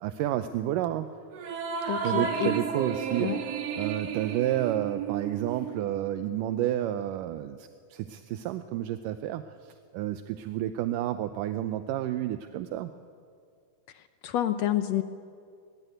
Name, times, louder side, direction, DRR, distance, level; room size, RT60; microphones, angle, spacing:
voice 1, 0.0-1.1 2.0-3.3 3.8-12.9, right 12 dB, 80° right, 10 dB, 2.3 m, -30 dB
sound 1, 1.3-6.1, right 6 dB, 55° right, 2.7 m, -33 dB
voice 2, 1.9-2.6 3.2-3.4 13.9-15.0, left 11 dB, 70° left, 11 dB, 1.7 m, -29 dB
22.5 x 20.0 x 9.3 m, 2.2 s
omnidirectional pair, 3.8 m